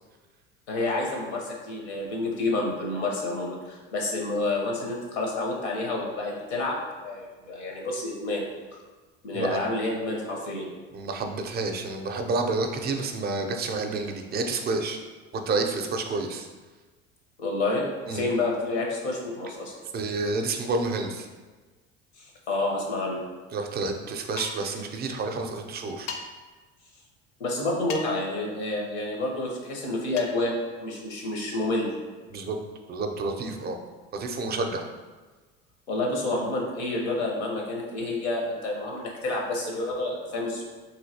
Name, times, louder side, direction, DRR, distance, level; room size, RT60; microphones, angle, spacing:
voice 1, 0.7-6.7 7.0-8.5 9.2-10.7 17.4-19.7 22.2-23.2 27.4-31.9 35.9-40.6, left 2 dB, 85° left, -1 dB, 0.9 m, -29 dB
voice 2, 9.3-9.7 10.9-15.0 15.5-16.5 18.1-18.3 19.9-21.3 23.5-26.1 32.3-32.6 32.9-33.8 34.1-34.8, right 3 dB, 30° right, 4 dB, 0.4 m, -29 dB
sound 1, 24.4-24.7 26.1-26.2 27.9-28.2 30.2-30.4, left 5 dB, 55° left, 0.5 m, -36 dB
3.1 x 2.8 x 2.7 m, 1.3 s
hypercardioid pair, 80°, 32 cm